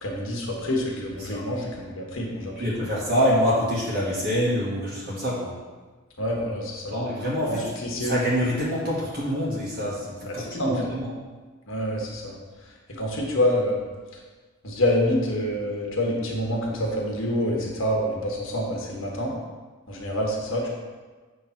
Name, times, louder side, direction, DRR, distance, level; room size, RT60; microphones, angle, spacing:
voice 1, 0.0-2.5 6.2-7.0 7.5-8.1 10.2-10.9 11.7-12.4 12.6-13.8 14.1-14.2 14.6-19.3 19.9-20.7, left 1 dB, 65° left, -1 dB, 1.4 m, -27 dB
voice 2, 2.6-5.6 6.9-11.1, equal, 45° right, -6 dB, 1.4 m, -26 dB
7.7 x 3.3 x 5.8 m, 1.4 s
head